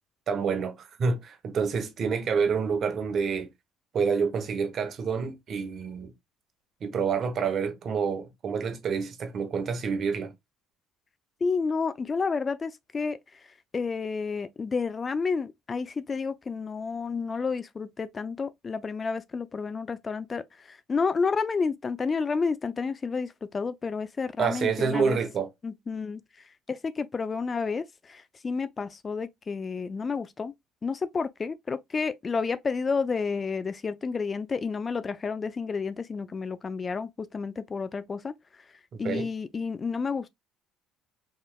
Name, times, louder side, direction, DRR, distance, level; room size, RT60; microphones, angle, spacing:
voice 1, 0.3-3.5 3.9-6.1 6.8-10.3 24.4-25.5 39.0-39.3, right 5 dB, 50° right, 0.9 m, -28 dB
voice 2, 11.4-25.2 25.6-26.2 26.7-30.5 30.8-38.3 39.0-40.3, left 5 dB, 35° left, 0.4 m, -30 dB
4.1 x 3.0 x 2.2 m
hypercardioid pair, 70°, 0 cm